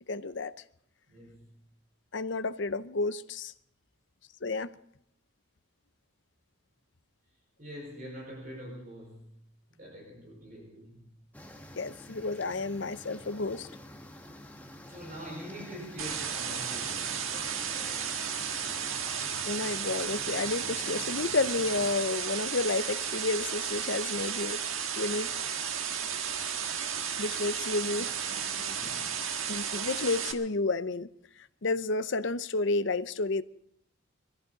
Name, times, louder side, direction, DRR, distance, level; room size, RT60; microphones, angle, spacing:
voice 1, 0.1-0.5 2.1-3.5 4.4-4.7 11.8-13.7 19.5-24.6 25.0-25.3 27.2-28.1 29.5-31.1 31.6-33.4, left 3 dB, 60° left, 0.7 m, -31 dB
voice 2, 1.1-1.6 7.6-9.5 9.7-11.2 14.8-18.6 27.8-29.3, equal, 40° right, 5.2 m, -46 dB
sound 1, 11.3-21.9, left 1 dB, 10° left, 1.2 m, -48 dB
sound 2, 16.0-30.3, right 7 dB, 80° right, 1.5 m, -33 dB
21.5 x 15.0 x 4.0 m
head